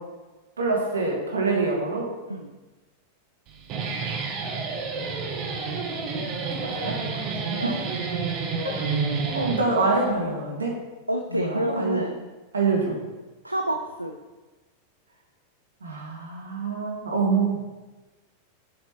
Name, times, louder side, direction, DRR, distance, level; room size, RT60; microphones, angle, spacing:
voice 1, 0.6-2.0 6.1-7.2 7.5-7.7 8.6-8.7 9.3-10.7 11.3-12.0 12.5-13.0 15.8-17.6, right 3 dB, 70° right, -1 dB, 2.1 m, -26 dB
Guitar, 3.5-10.1, right 4 dB, 40° right, 1.2 m, -29 dB
voice 2, 11.1-12.2 13.4-14.2, right 1 dB, 85° right, 4 dB, 0.5 m, -28 dB
7.3 x 6.7 x 4.4 m, 1.2 s
figure-of-eight pair, 90°, 0 cm